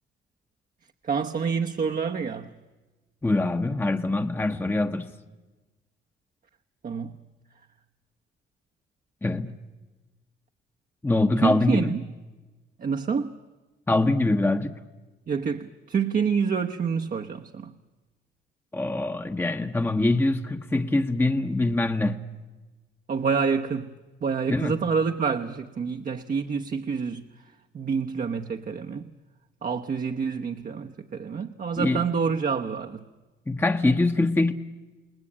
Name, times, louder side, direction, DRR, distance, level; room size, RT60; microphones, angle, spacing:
voice 1, 1.0-2.5 6.8-7.2 11.4-12.0 12.8-13.3 15.3-17.7 23.1-23.9 24.2-27.3 27.7-29.1 29.6-33.0, right 6 dB, 45° right, 1.0 m, -27 dB
voice 2, 3.2-5.1 9.2-9.5 11.0-12.0 13.9-14.7 18.7-22.2 24.5-24.8 31.8-32.0 33.5-34.5, left 2 dB, 10° left, 1.0 m, -24 dB
29.5 x 19.5 x 8.7 m
cardioid pair, 90°, 20 cm